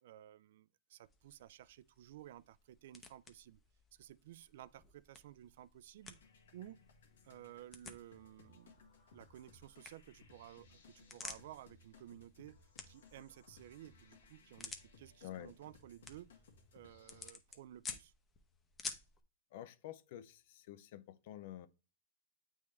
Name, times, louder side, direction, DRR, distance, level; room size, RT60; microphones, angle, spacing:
voice 1, 0.0-3.6 3.9-6.2 6.5-6.8 7.2-12.6 12.9-16.3 16.7-18.1, right 12 dB, 60° right, 0.3 m, -55 dB
sound 1, 1.0-19.2, left 4 dB, 15° left, 0.7 m, -54 dB
sound 2, 6.0-17.3, left 4 dB, 85° left, 1.5 m, -64 dB
voice 2, 15.2-15.5 19.5-21.7, left 12 dB, 55° left, 0.5 m, -49 dB
8.3 x 3.5 x 3.2 m
hypercardioid pair, 145°, 0 cm